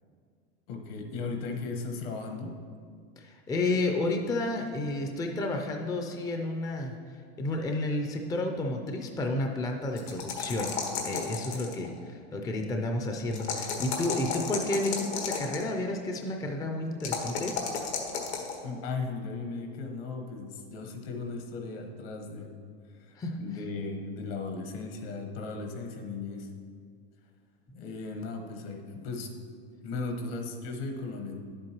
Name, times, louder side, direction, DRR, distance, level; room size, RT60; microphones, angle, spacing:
voice 1, 0.7-2.6 18.6-22.5 23.0-26.5 27.7-29.3 29.8-31.4, left 3 dB, 65° left, 3 dB, 1.3 m, -36 dB
voice 2, 3.2-6.9 7.4-10.7 11.0-17.5 23.2-23.4, left 2 dB, 10° left, 3 dB, 0.4 m, -31 dB
sound 1, 10.0-11.9 13.3-15.6 17.0-18.6, left 6 dB, 85° left, 1.5 m, -33 dB
10.0 x 7.7 x 3.0 m, 2.1 s
supercardioid pair, 125°, 32 cm